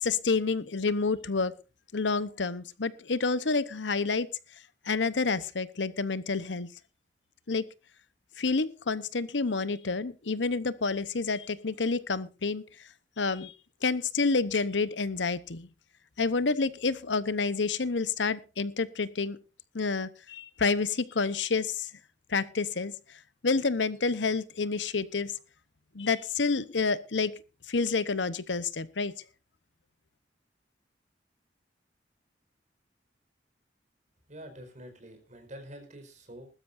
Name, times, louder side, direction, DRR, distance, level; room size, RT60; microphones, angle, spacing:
voice 1, 0.0-1.5 1.9-4.3 4.8-6.7 7.5-7.7 8.4-12.6 13.2-13.5 13.8-15.7 16.2-19.4 19.7-21.9 22.3-22.9 23.4-25.3 25.9-27.3 27.7-29.1, left 4 dB, 90° left, 16 dB, 1.0 m, -29 dB
voice 2, 34.3-36.5, equal, 45° right, 5 dB, 4.9 m, -46 dB
21.0 x 13.0 x 2.6 m, 0.31 s
head